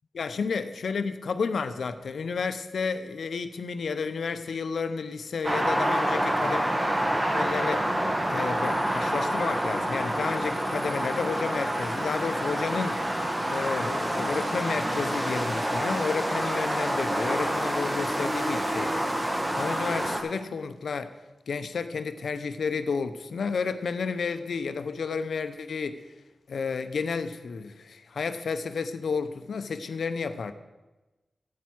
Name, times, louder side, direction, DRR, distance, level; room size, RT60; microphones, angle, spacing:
voice 1, 0.1-6.6 7.3-8.0 8.3-13.0 13.5-19.0 19.5-21.1 21.5-26.0 26.5-30.5, left 5 dB, 75° left, 10 dB, 0.7 m, -31 dB
sound 1, 5.4-20.2, right 1 dB, 25° right, 1.7 m, -27 dB
9.3 x 8.3 x 6.1 m, 1.1 s
cardioid pair, 45°, 0 cm